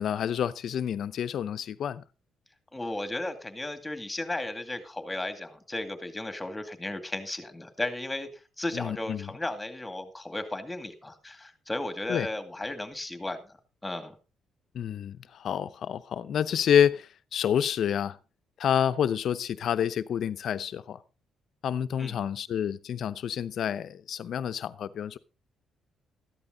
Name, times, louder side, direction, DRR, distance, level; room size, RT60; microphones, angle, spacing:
voice 1, 0.0-2.0 8.7-9.3 12.1-12.3 14.7-18.2 18.6-21.0 21.6-25.2, left 9 dB, 65° left, 0.7 m, -28 dB
voice 2, 2.7-13.6 13.8-14.2 22.0-22.2, left 2 dB, 15° left, 2.4 m, -35 dB
14.0 x 11.0 x 3.9 m
cardioid pair, 85°, 0 cm